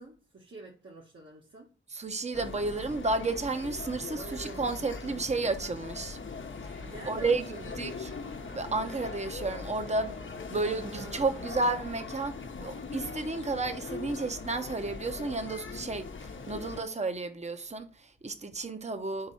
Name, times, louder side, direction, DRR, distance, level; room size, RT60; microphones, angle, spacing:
voice 1, 0.0-1.7 4.1-4.7 6.8-8.0 10.7-11.7, right 3 dB, 65° right, 1.5 m, -47 dB
voice 2, 1.9-6.2 6.6-7.5 7.8-8.1 8.5-10.2 10.5-19.3, right 3 dB, 35° right, 0.8 m, -32 dB
sound 1, 2.3-16.8, left 4 dB, 70° left, 0.8 m, -41 dB
Liquid, 6.8-11.8, right 1 dB, 85° right, 2.6 m, -51 dB
5.1 x 4.8 x 5.7 m
wide cardioid pair, 110°, 20 cm